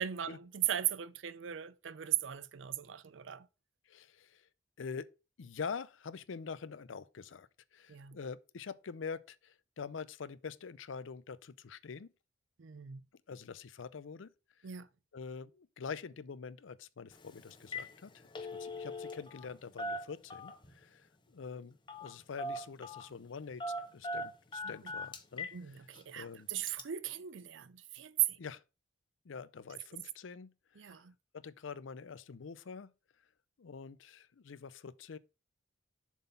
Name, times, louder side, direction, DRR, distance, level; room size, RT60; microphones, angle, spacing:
voice 1, 0.0-3.5 7.9-8.2 12.6-13.0 14.6-14.9 24.6-24.9 25.5-28.4 30.8-31.1, right 12 dB, 75° right, 0.5 m, -37 dB
voice 2, 3.9-4.5 4.8-5.1 5.4-12.1 13.3-14.3 15.1-23.7 23.9-25.5 26.1-26.5 28.4-28.6 29.2-30.9 31.3-32.9 33.6-35.2, left 5 dB, 90° left, 0.5 m, -45 dB
Telephone, 17.1-17.3 17.6-17.9 18.2-19.5 19.8-20.7 21.9-22.1 22.4-23.1 23.6-25.6 26.0-26.1 26.7-26.8, left 1 dB, 25° left, 0.8 m, -40 dB
7.1 x 4.1 x 5.5 m
head